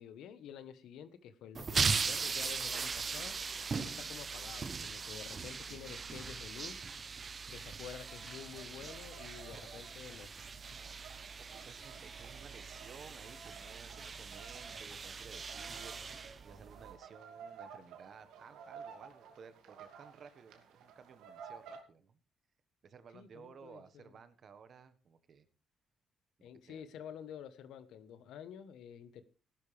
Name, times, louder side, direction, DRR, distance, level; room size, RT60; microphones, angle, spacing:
voice 1, 0.0-3.3 3.8-6.9 7.5-10.3 23.1-24.1 26.4-29.2, left 9 dB, 85° left, 13 dB, 1.3 m, -49 dB
sound 1, 1.5-16.9, right 5 dB, 40° right, 0.9 m, -39 dB
sound 2, 7.9-21.8, right 6 dB, 90° right, 2.4 m, -54 dB
voice 2, 9.3-9.9 11.2-22.2 22.8-25.4 26.4-26.9, right 6 dB, 55° right, 12 dB, 1.5 m, -56 dB
16.0 x 12.0 x 3.5 m, 0.34 s
cardioid pair, 90°, 0 cm